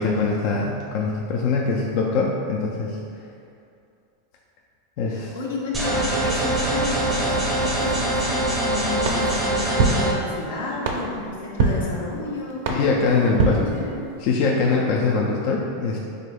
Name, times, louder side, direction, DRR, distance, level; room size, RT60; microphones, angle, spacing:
voice 1, 0.0-3.0 5.0-5.3 12.7-13.6 14.2-16.0, left 4 dB, 45° left, -2 dB, 0.3 m, -22 dB
voice 2, 5.1-12.7 13.0-13.9, left 3 dB, 85° left, -3 dB, 0.9 m, -31 dB
sound 1, 5.7-10.1, right 1 dB, 15° right, 0.6 m, -23 dB
sound 2, 9.0-14.4, right 3 dB, 65° right, 0.5 m, -26 dB
4.9 x 3.7 x 2.2 m, 2.4 s
supercardioid pair, 160°, 0 cm